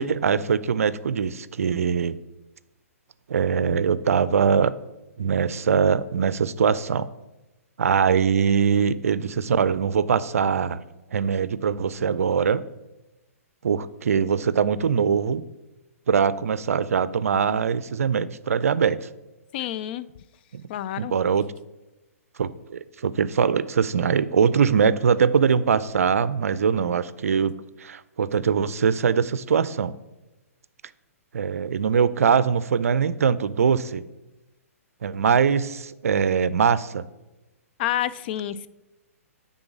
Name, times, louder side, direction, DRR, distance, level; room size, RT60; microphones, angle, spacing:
voice 1, 0.0-2.1 3.3-4.7 5.2-7.1 7.8-10.8 11.1-12.6 13.6-15.4 16.1-19.1 20.5-20.6 21.0-21.4 22.4-27.5 27.8-30.0 31.3-34.0 35.0-37.0, right 6 dB, 70° right, 17 dB, 0.4 m, -22 dB
voice 2, 19.5-20.1 20.7-21.2 37.8-38.7, left 12 dB, 45° left, 16 dB, 0.4 m, -28 dB
9.6 x 3.9 x 6.1 m, 1.0 s
figure-of-eight pair, 125°, 8 cm